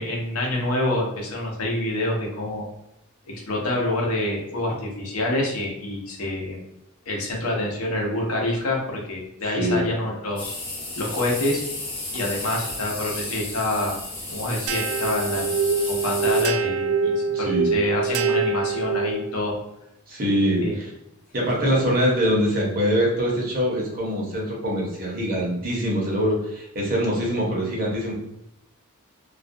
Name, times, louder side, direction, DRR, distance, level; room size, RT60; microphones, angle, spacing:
voice 1, 0.0-2.7 3.3-6.6 7.1-10.5 11.0-11.6 12.1-14.0 14.3-15.5 15.9-19.6 20.6-20.8, left 1 dB, 75° left, -1 dB, 0.7 m, -27 dB
voice 2, 9.5-9.9 17.3-17.7 20.1-20.9 21.3-28.1, equal, 45° right, -3 dB, 0.8 m, -23 dB
sound 1, 10.4-16.4, left 2 dB, 25° left, 0.7 m, -33 dB
sound 2, 14.7-19.4, right 4 dB, 75° right, 0.3 m, -24 dB
2.4 x 2.2 x 2.6 m, 0.84 s
head